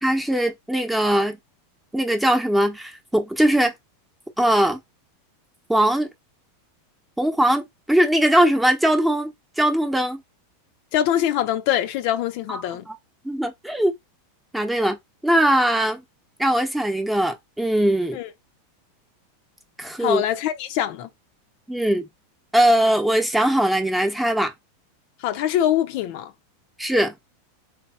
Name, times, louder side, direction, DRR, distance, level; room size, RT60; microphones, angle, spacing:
voice 1, 0.0-1.4 1.9-3.7 4.4-4.8 5.7-6.1 7.2-7.6 7.9-10.2 12.5-13.0 13.2-13.9 14.5-15.0 15.2-16.0 16.4-18.2 19.8-20.2 21.7-22.0 22.5-24.5 26.8-27.1, right 1 dB, 5° right, 1.0 m, -20 dB
voice 2, 10.9-12.8 18.1-18.3 20.0-21.1 25.2-26.3, left 11 dB, 55° left, 0.7 m, -23 dB
3.4 x 3.3 x 4.3 m
supercardioid pair, 125°, 0 cm